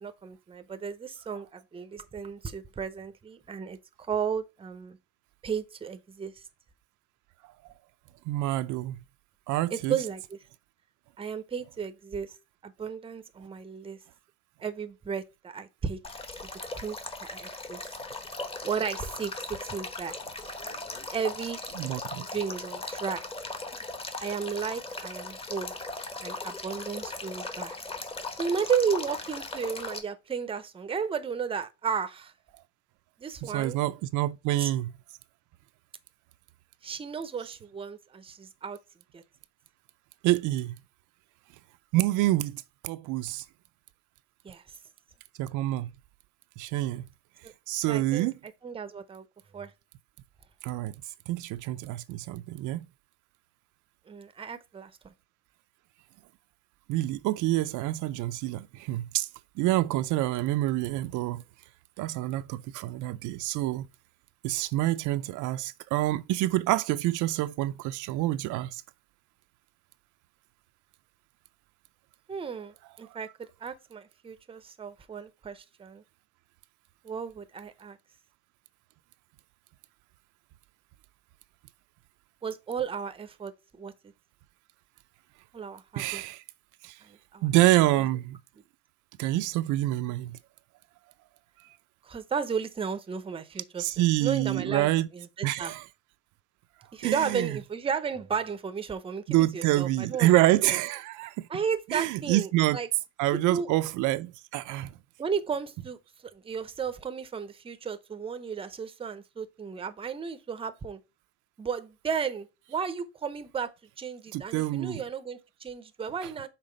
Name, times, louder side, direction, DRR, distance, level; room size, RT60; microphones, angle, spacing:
voice 1, 0.0-5.0 5.4-6.4 9.7-10.4 11.2-12.3 12.6-14.0 14.6-16.0 16.7-17.8 18.6-20.1 21.1-21.6 22.3-23.2 24.2-25.7 26.2-27.8 28.4-32.3 33.2-33.8 34.6-34.7 36.8-38.8 39.1-39.2 44.4-44.6 47.4-47.5 47.9-48.3 48.6-49.2 49.5-49.7 54.1-55.1 72.3-73.3 73.6-76.0 77.0-78.0 82.4-83.9 85.5-86.2 87.0-87.5 88.0-88.1 92.0-95.7 96.9-100.3 100.6-100.8 101.5-102.9 103.5-103.7 105.2-106.0 106.3-111.0 111.6-116.5, right 6 dB, 15° right, 0.6 m, -34 dB
voice 2, 8.3-9.0 9.5-10.0 21.8-22.3 33.4-34.9 40.2-40.7 41.9-43.4 45.4-45.9 46.6-47.0 47.7-48.3 50.6-50.9 51.3-52.9 56.9-59.3 59.6-61.4 62.0-63.9 64.4-68.8 86.0-86.4 86.8-87.0 87.4-88.4 89.2-90.4 93.8-95.1 95.4-95.8 97.0-97.5 99.3-101.4 101.9-102.8 103.2-104.9 114.3-115.0, right 16 dB, 65° right, 0.5 m, -27 dB
Male speech man speaking / Stream / Trickle dribble, 16.0-30.0, left 3 dB, 15° left, 1.0 m, -38 dB
5.8 x 4.0 x 5.0 m
cardioid pair, 130°, 32 cm